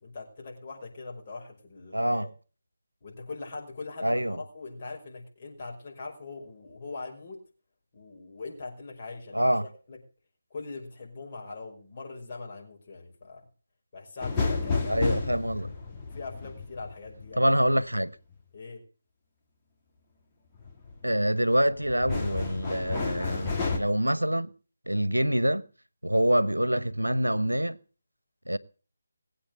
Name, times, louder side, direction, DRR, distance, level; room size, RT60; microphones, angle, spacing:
voice 1, 0.0-2.3 3.0-7.4 7.9-9.5 9.9-10.0 10.5-13.5 13.9-15.2 16.1-17.5 18.5-18.8, left 3 dB, 35° left, 5.4 m, -41 dB
voice 2, 1.9-2.3 4.0-4.4 9.3-9.7 14.9-15.7 17.4-18.1 21.0-24.5 24.9-25.7 26.0-27.8 28.5-28.6, equal, 85° right, 1.0 m, -25 dB
sound 1, 14.2-18.1 20.6-21.0 21.5-23.8, left 4 dB, 15° left, 2.9 m, -31 dB
20.5 x 8.6 x 6.5 m
figure-of-eight pair, 150°, 0 cm